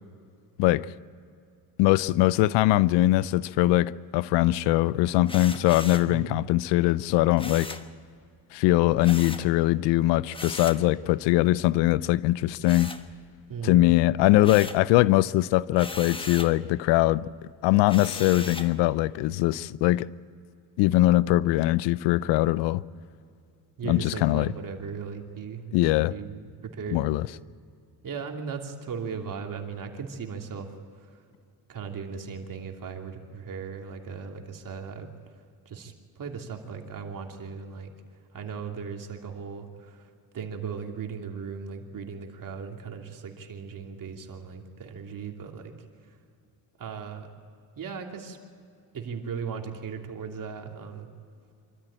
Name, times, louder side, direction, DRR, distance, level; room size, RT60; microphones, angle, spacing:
voice 1, 1.8-7.8 8.5-12.9 13.6-17.3 17.6-20.1 20.8-22.8 23.9-24.5 25.7-26.1 26.9-27.3, left 16 dB, 85° left, 0.6 m, -22 dB
sound 1, 5.3-6.1 7.4-7.9 9.0-9.5 10.3-10.9 12.6-13.5 13.9-14.9 15.7-16.6 17.9-18.8, left 2 dB, 10° left, 1.3 m, -38 dB
voice 2, 6.1-6.4 13.5-13.9 23.8-25.6 26.1-26.4 26.7-27.0 28.0-30.7 31.0-31.2 31.7-35.1 35.6-37.9 38.3-40.1 40.3-46.2 46.8-47.3 47.8-48.4 48.9-51.1, right 6 dB, 50° right, 3.0 m, -37 dB
25.5 x 13.5 x 8.8 m
supercardioid pair, 80°, 41 cm